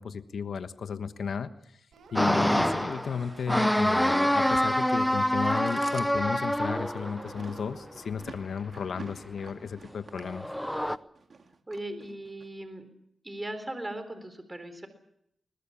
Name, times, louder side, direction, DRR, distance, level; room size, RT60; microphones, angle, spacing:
voice 1, 0.0-1.5 2.1-10.5, left 6 dB, 70° left, 10 dB, 1.2 m, -34 dB
sound 1, 1.9-8.1, right 4 dB, 80° right, 4.5 m, -53 dB
sound 2, 2.2-7.7 10.2-11.0, equal, 5° left, 0.9 m, -26 dB
Chewing mastication, 5.4-12.5, right 4 dB, 55° right, 2.3 m, -49 dB
voice 2, 11.7-12.9 13.2-14.9, right 1 dB, 20° right, 9 dB, 3.9 m, -38 dB
22.0 x 20.5 x 7.1 m, 0.74 s
cardioid pair, 75°, 0 cm